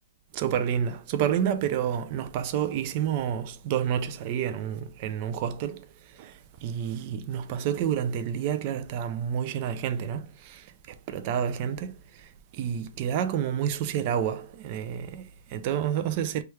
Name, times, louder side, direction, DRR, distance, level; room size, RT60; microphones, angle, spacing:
voice 1, 0.3-5.9 6.1-16.4, right 9 dB, 30° right, 0.3 m, -29 dB
3.0 x 2.3 x 3.1 m
hypercardioid pair, 170°, 0 cm